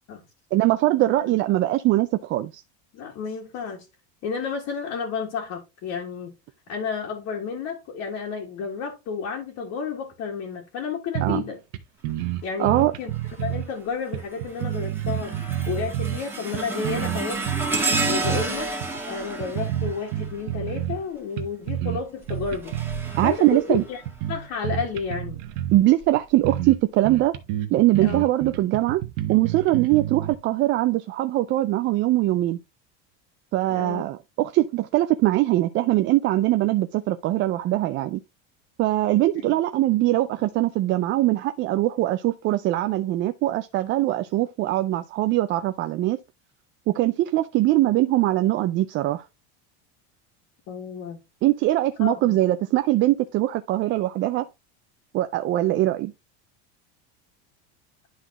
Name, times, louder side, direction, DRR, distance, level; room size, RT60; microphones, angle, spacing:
voice 1, 0.5-2.6 11.2-11.4 12.6-12.9 23.2-23.8 25.7-27.4 27.7-29.0 29.3-32.6 33.5-38.2 38.8-46.2 46.9-49.3 51.4-54.5 55.1-56.1, right 16 dB, 35° right, 0.4 m, -22 dB
voice 2, 2.9-3.9 4.2-6.3 6.7-11.6 12.4-13.1 13.4-15.3 15.7-17.4 18.0-18.7 19.1-22.8 23.2-24.0 24.3-25.4 28.0-28.3 33.7-34.0 39.4-39.6 50.7-51.2 52.0-52.4, left 5 dB, 50° left, 1.9 m, -31 dB
sound 1, 11.1-11.5 11.7-11.8 12.0-13.7 14.1-16.2 16.5-18.5 18.8-19.0 19.4-21.0 21.4-22.0 22.3-23.3 23.7-25.8 26.2-26.3 26.4-26.8 27.0-30.3, right 12 dB, 65° right, 1.2 m, -29 dB
sound 2, 13.1-13.5 14.0-20.8 22.1-24.3 24.9-25.1 26.0-26.1, right 2 dB, 5° right, 1.7 m, -31 dB
11.0 x 3.9 x 2.9 m
supercardioid pair, 145°, 35 cm